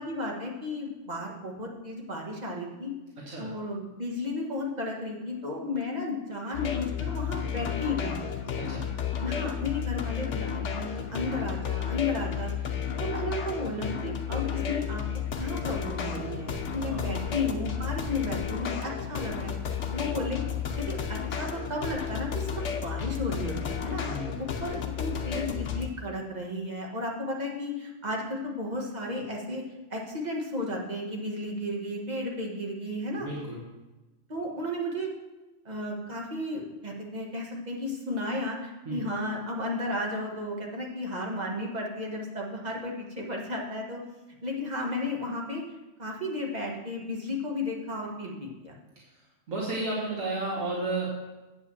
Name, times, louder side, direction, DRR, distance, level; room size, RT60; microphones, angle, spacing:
voice 1, 0.0-2.9 3.4-8.2 9.2-15.0 15.4-20.4 20.8-24.1 24.4-29.6 29.9-33.3 34.3-35.1 35.6-44.0 44.4-45.6 46.0-48.8, left 2 dB, 35° right, -1 dB, 1.7 m, -33 dB
sound 1, 6.5-25.9, left 8 dB, 65° left, 1.1 m, -32 dB
voice 2, 16.8-17.3 24.0-24.4 33.2-33.6 38.9-39.0 49.5-51.1, right 2 dB, 90° right, -5 dB, 2.0 m, -33 dB
8.4 x 5.2 x 7.3 m, 1.1 s
omnidirectional pair, 1.3 m